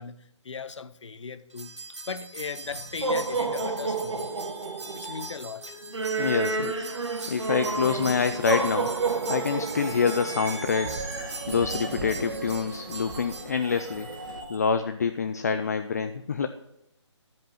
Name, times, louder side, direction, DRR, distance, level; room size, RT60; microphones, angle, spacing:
voice 1, 0.0-1.8 2.1-4.4 4.9-5.8, left 5 dB, 70° left, 13 dB, 0.8 m, -38 dB
sound 1, 1.6-13.5, right 3 dB, 70° right, 1.7 m, -31 dB
sound 2, 3.9-14.5, right 2 dB, 15° right, 1.8 m, -43 dB
voice 2, 6.2-6.9 7.3-8.9 9.3-11.1 11.5-14.1 14.5-16.5, left 6 dB, 35° left, 9 dB, 0.4 m, -26 dB
sound 3, 7.6-14.4, right 3 dB, 40° right, 1.5 m, -39 dB
10.5 x 5.3 x 5.6 m, 0.87 s
hypercardioid pair, 160°, 16 cm